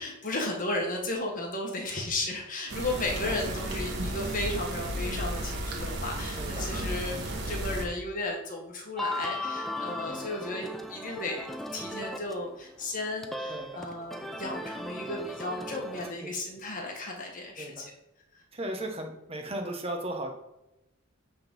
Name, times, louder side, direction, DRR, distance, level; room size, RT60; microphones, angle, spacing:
voice 1, 0.0-17.8, left 2 dB, 40° left, 0 dB, 1.5 m, -34 dB
sound 1, 2.7-7.9, right 1 dB, 50° right, 1.3 m, -33 dB
voice 2, 3.2-3.6 6.4-6.7 10.1-10.3 13.5-13.9 16.1-16.4 17.6-17.9 18.5-20.3, right 1 dB, 25° right, 3 dB, 1.1 m, -37 dB
sound 2, 9.0-12.5 12.8-16.1, left 1 dB, ahead, 0.4 m, -37 dB
8.8 x 3.9 x 5.4 m, 0.89 s
head